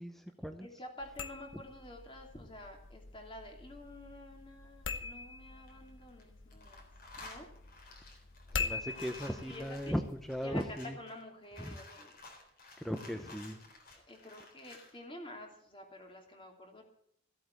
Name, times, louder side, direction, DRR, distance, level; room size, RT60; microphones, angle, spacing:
voice 1, 0.0-0.7 8.6-11.0 11.6-11.8 12.8-13.6, equal, ahead, 6 dB, 0.7 m, -37 dB
voice 2, 0.6-6.9 7.2-7.5 9.5-10.0 10.4-12.1 13.9-16.8, left 1 dB, 25° left, 2 dB, 2.9 m, -49 dB
sound 1, 1.0-10.8, left 5 dB, 85° left, 1.1 m, -44 dB
sound 2, 5.5-6.2 6.5-15.0, left 2 dB, 50° left, 3.7 m, -53 dB
15.5 x 8.4 x 8.0 m, 0.69 s
head